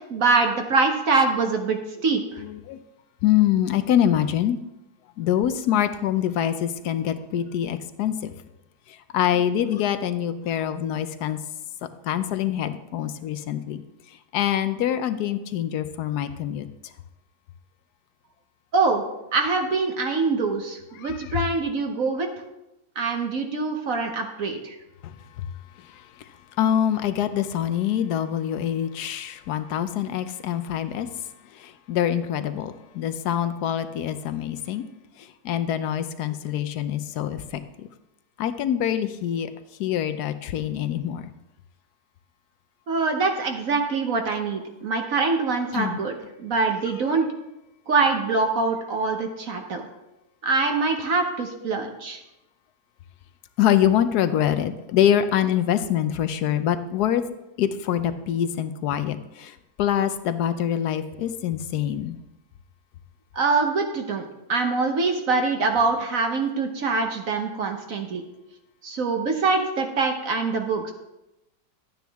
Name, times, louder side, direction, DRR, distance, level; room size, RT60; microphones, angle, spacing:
voice 1, 0.1-2.2 18.7-19.0 19.3-22.3 23.0-24.8 42.9-47.3 47.9-49.9 50.4-52.2 63.3-68.2 68.8-70.9, right 4 dB, 55° right, 4 dB, 1.2 m, -24 dB
voice 2, 2.4-2.8 3.2-4.6 5.2-8.3 9.1-11.4 12.1-13.8 14.3-16.7 21.0-21.3 25.0-25.1 26.6-31.1 31.6-34.9 35.4-37.6 38.4-39.5 39.8-41.2 45.7-46.0 53.6-57.2 57.6-62.2, left 10 dB, 70° left, 11 dB, 1.1 m, -25 dB
12.0 x 9.2 x 3.5 m, 0.93 s
omnidirectional pair, 1.9 m